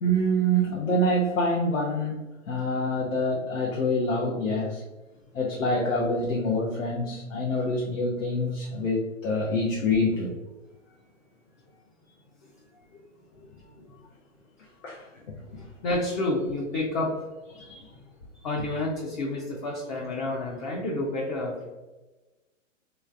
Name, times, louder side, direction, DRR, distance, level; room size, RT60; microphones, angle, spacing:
voice 1, 0.0-4.8 5.3-10.4 14.8-15.4, equal, 90° left, -2 dB, 0.8 m, -26 dB
voice 2, 13.4-14.0 15.6-17.2 17.4-18.0 18.4-21.7, left 2 dB, 35° left, -3 dB, 0.6 m, -30 dB
3.4 x 3.1 x 2.4 m, 1.1 s
hypercardioid pair, 135°, 39 cm